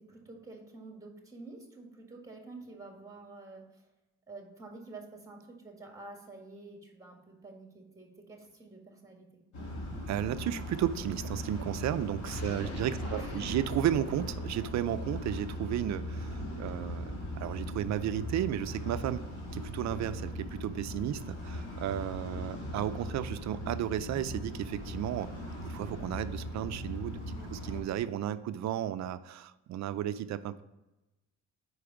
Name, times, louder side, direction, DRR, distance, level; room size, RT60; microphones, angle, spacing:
voice 1, 0.0-3.9 4.3-9.3 12.4-13.5 27.3-27.6, right 3 dB, 10° right, 1 dB, 1.7 m, -49 dB
sound 1, 9.5-27.8, equal, 70° left, 2.1 m, -39 dB
voice 2, 10.1-19.2 19.5-30.6, right 11 dB, 65° right, 13 dB, 0.5 m, -34 dB
sound 2, 12.2-16.2, left 3 dB, 50° left, 1.1 m, -44 dB
4.9 x 4.7 x 5.9 m, 1.0 s
cardioid pair, 90°, 30 cm